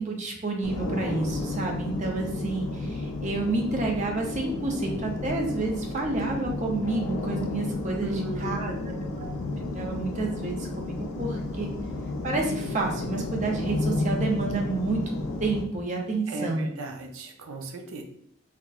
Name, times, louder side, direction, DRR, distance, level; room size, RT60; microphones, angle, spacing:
voice 1, 0.0-9.3 9.7-11.7 12.2-15.1 15.4-16.7, right 3 dB, 35° right, 1 dB, 0.4 m, -29 dB
sound 1, 0.6-15.6, left 2 dB, 85° left, 0.4 m, -32 dB
voice 2, 8.0-9.4 16.3-18.0, right 2 dB, 90° right, 3 dB, 0.5 m, -37 dB
2.8 x 2.1 x 2.3 m, 0.67 s
head